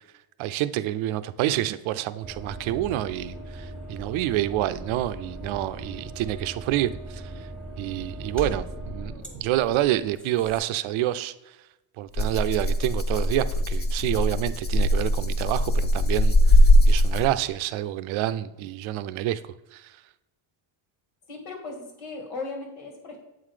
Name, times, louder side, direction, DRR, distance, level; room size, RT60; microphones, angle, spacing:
voice 1, 0.4-7.2 7.8-11.3 12.0-16.6 16.9-19.4 19.7-19.8, right 14 dB, 75° right, 13 dB, 0.6 m, -28 dB
sound 1, 2.2-10.6, right 1 dB, ahead, 1.2 m, -39 dB
Rattle (instrument), 12.2-17.5, left 1 dB, 20° left, 0.5 m, -20 dB
voice 2, 21.3-23.2, left 3 dB, 75° left, 2 dB, 2.2 m, -37 dB
7.8 x 3.8 x 4.9 m, 0.96 s
cardioid pair, 120°, 49 cm